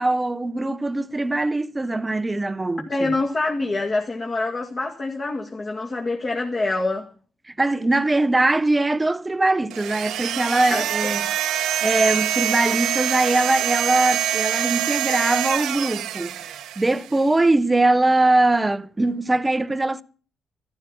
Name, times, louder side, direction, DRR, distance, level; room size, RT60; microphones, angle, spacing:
voice 1, 0.0-3.1 7.6-11.2 11.8-20.0, right 2 dB, 15° right, 0.8 m, -21 dB
voice 2, 2.8-7.1 10.7-11.1, left 2 dB, 35° left, 2.1 m, -26 dB
sound 1, 9.7-17.1, right 11 dB, 85° right, 1.2 m, -25 dB
13.5 x 12.0 x 7.1 m
cardioid pair, 90°, 0 cm